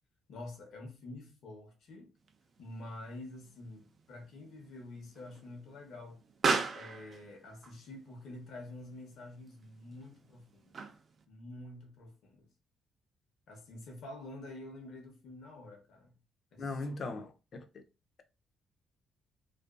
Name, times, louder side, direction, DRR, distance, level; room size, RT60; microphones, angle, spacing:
voice 1, 0.3-2.1 2.6-6.2 6.7-10.8 11.3-12.5 13.5-16.2 16.5-16.8, left 2 dB, 70° left, 0.9 m, -48 dB
Explosion, 2.2-11.2, right 4 dB, 50° right, 0.4 m, -39 dB
voice 2, 16.6-17.8, left 3 dB, 50° left, 0.5 m, -39 dB
2.5 x 2.2 x 2.2 m
cardioid pair, 90°, 0 cm